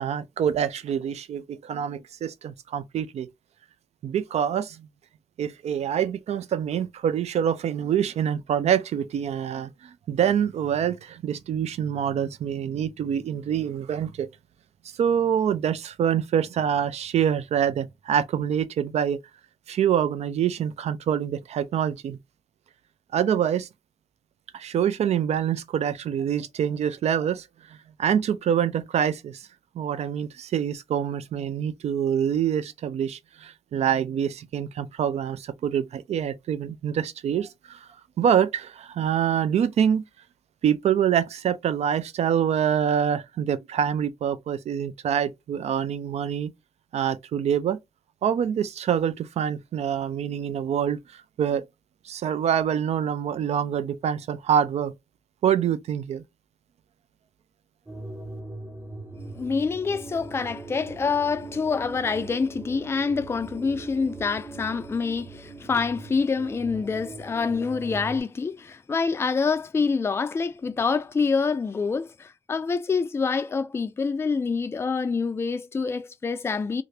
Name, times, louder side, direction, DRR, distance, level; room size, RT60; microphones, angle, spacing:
voice 1, 0.0-3.3 4.0-4.9 5.4-14.3 15.0-19.2 19.7-22.2 23.1-23.7 24.5-27.5 28.0-29.5 29.7-37.9 38.2-40.0 40.6-46.5 46.9-47.8 48.2-51.7 52.0-54.9 55.4-56.2, right 9 dB, 65° right, 0.4 m, -25 dB
sound 1, 57.9-68.2, right 2 dB, 15° right, 1.0 m, -40 dB
voice 2, 59.3-76.8, left 5 dB, 20° left, 0.3 m, -26 dB
2.7 x 2.4 x 3.2 m
cardioid pair, 100°, 12 cm